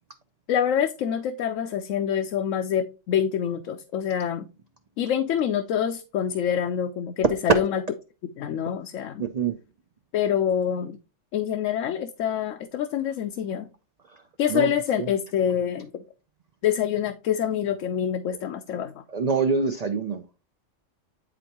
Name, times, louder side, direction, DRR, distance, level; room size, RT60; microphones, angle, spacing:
voice 1, 0.5-4.5 5.0-7.8 8.4-9.2 10.1-11.0 11.3-13.7 14.4-16.0 16.6-19.0, left 9 dB, 80° left, 7 dB, 1.0 m, -26 dB
voice 2, 9.2-9.6 14.5-14.7 15.0-15.1 19.1-20.4, right 5 dB, 55° right, 7 dB, 0.4 m, -26 dB
8.0 x 5.2 x 2.8 m, 0.31 s
omnidirectional pair, 1.3 m